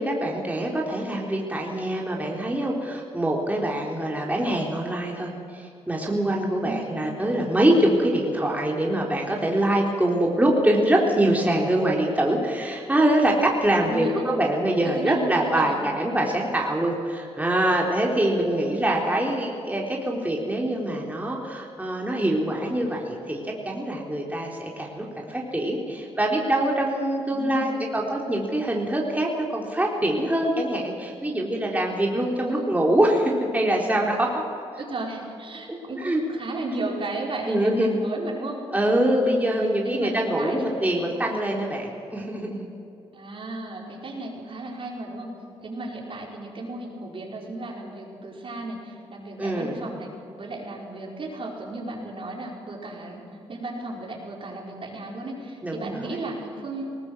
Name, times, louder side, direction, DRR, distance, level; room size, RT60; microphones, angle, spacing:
voice 1, 0.0-34.4 36.0-36.2 36.8-36.9 37.5-38.0 38.7-42.7 49.4-49.8 55.6-56.1, right 1 dB, 15° right, -2 dB, 3.8 m, -24 dB
voice 2, 13.9-14.4 14.8-15.8 18.5-19.1 27.3-27.9 32.4-32.8 34.8-38.6 39.2-39.5 39.8-40.7 43.1-45.3 45.6-50.1 50.4-53.2 53.5-56.8, right 2 dB, 50° right, -2 dB, 5.3 m, -34 dB
20.0 x 18.5 x 8.0 m, 2.7 s
cardioid pair, 75°, 11 cm